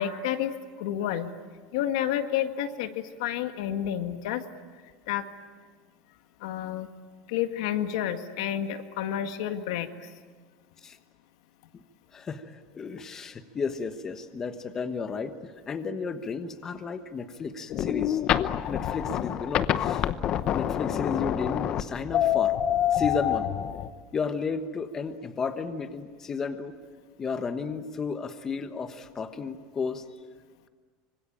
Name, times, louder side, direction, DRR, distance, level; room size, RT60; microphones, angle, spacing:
voice 1, 0.0-1.3 1.7-4.4 5.1-5.3 6.4-6.9 7.3-10.1, left 10 dB, 75° left, 7 dB, 1.9 m, -30 dB
voice 2, 12.1-18.2 18.7-20.1 20.4-22.5 22.9-23.5 24.1-26.7 27.2-30.0, left 5 dB, 15° left, 8 dB, 1.2 m, -33 dB
sound 1, 17.7-23.9, left 11 dB, 35° left, 0.9 m, -26 dB
25.5 x 25.0 x 8.9 m, 1.5 s
cardioid pair, 175°, 3 cm